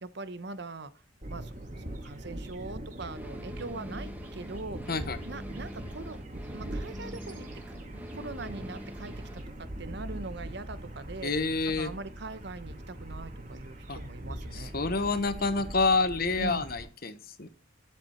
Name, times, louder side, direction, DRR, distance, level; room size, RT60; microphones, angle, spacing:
voice 1, 0.0-0.9 1.3-1.5 1.9-4.8 5.2-6.2 6.5-7.5 8.1-9.1 9.6-11.3 11.7-14.8 16.4-16.6, right 3 dB, 60° right, 13 dB, 0.9 m, -41 dB
sound 1, 1.2-16.9, right 1 dB, 40° right, 2.1 m, -41 dB
sound 2, 3.1-9.5, equal, 10° right, 1.1 m, -45 dB
voice 2, 11.2-11.9 13.9-14.0 14.5-17.5, left 3 dB, 50° left, 11 dB, 1.1 m, -28 dB
10.5 x 7.9 x 4.4 m, 0.38 s
head